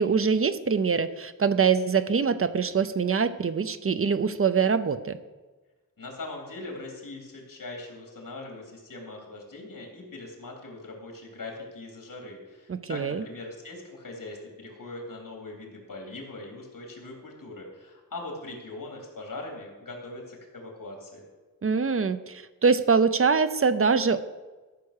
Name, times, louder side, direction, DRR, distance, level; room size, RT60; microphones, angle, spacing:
voice 1, 0.0-5.2 12.7-13.2 21.6-24.2, right 5 dB, 40° right, 12 dB, 0.6 m, -24 dB
voice 2, 6.0-21.2, left 2 dB, 75° left, 0 dB, 3.1 m, -41 dB
13.5 x 5.9 x 6.5 m, 1.2 s
wide cardioid pair, 100°, 33 cm